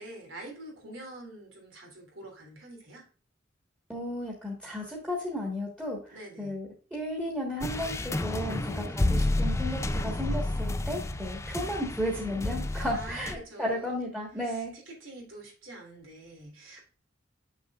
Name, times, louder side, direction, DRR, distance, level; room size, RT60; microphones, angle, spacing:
voice 1, 0.0-3.0 6.1-6.5 8.4-9.1 12.9-14.0 14.4-16.8, right 1 dB, 90° right, 0 dB, 3.1 m, -46 dB
voice 2, 3.9-14.7, left 1 dB, 5° right, -3 dB, 1.4 m, -34 dB
sound 1, 7.6-13.3, left 1 dB, 15° left, 0.4 m, -30 dB
7.1 x 6.3 x 2.4 m, 0.38 s
head